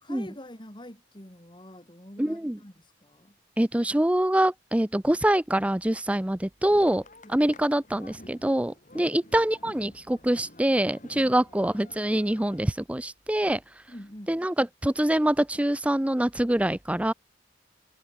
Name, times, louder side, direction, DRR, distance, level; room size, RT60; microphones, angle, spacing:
voice 1, 0.0-3.3 7.2-7.4 9.0-9.1 11.2-11.4 13.9-14.4, left 1 dB, 25° left, 3.4 m, -46 dB
voice 2, 2.2-2.6 3.6-7.0 7.3-13.6 14.3-17.1, right 1 dB, 5° right, 0.5 m, -25 dB
sound 1, 6.7-12.6, left 1 dB, 40° left, 7.4 m, -51 dB
head